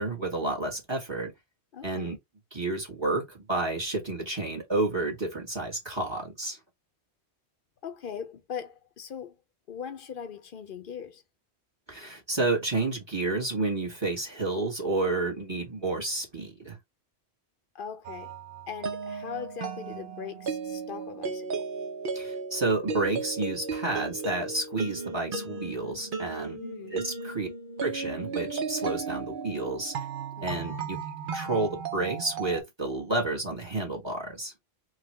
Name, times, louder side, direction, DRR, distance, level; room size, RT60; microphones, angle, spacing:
voice 1, 0.0-1.3 1.8-2.2 2.5-6.6 11.9-16.8 22.1-26.6 26.9-27.5 27.8-30.1 30.4-31.0 31.3-34.5, right 2 dB, 25° right, 1.2 m, -30 dB
voice 2, 1.7-2.2 7.8-9.4 9.7-11.2 17.7-18.4 18.7-21.7 26.5-27.0 30.4-30.7, left 7 dB, 55° left, 0.8 m, -40 dB
sound 1, 18.0-32.6, right 4 dB, 55° right, 0.9 m, -35 dB
3.8 x 2.3 x 2.9 m
omnidirectional pair, 1.1 m